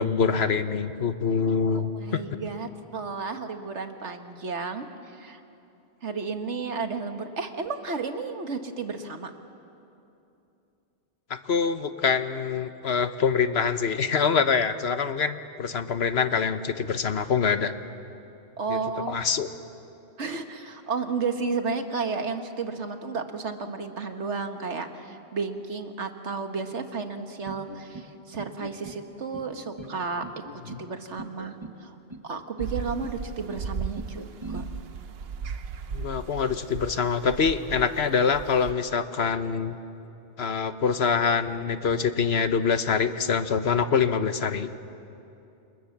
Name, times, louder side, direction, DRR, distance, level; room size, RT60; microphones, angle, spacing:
voice 1, 0.0-2.2 11.3-17.7 18.7-18.8 19.1-19.5 30.7-30.8 35.9-39.8 40.4-44.9, left 6 dB, 65° left, 10 dB, 1.2 m, -25 dB
voice 2, 1.7-5.4 6.0-9.3 18.6-19.2 20.2-32.0 32.2-34.7, right 4 dB, 80° right, 6 dB, 1.8 m, -33 dB
sound 1, 27.4-28.1 28.4-29.0 29.3-29.9 30.2-30.8 31.2-31.8 32.1-32.7 33.0-33.6 34.0-34.6, right 2 dB, 25° right, 1.5 m, -41 dB
sound 2, 32.6-38.7, right 5 dB, 60° right, 1.0 m, -36 dB
29.5 x 27.5 x 7.3 m, 2.8 s
omnidirectional pair, 1.2 m